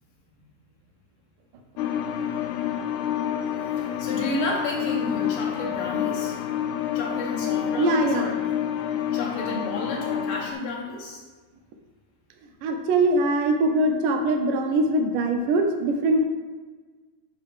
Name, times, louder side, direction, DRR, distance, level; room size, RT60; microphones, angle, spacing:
sound 1, 1.8-10.5, left 10 dB, 85° left, 2.6 m, -28 dB
voice 1, 4.0-6.4 7.0-8.3 9.1-11.2, left 2 dB, 65° left, -2 dB, 2.8 m, -31 dB
voice 2, 7.8-8.3 12.6-16.2, right 2 dB, 80° right, 4 dB, 2.0 m, -22 dB
8.5 x 4.2 x 5.0 m, 1.3 s
omnidirectional pair, 4.6 m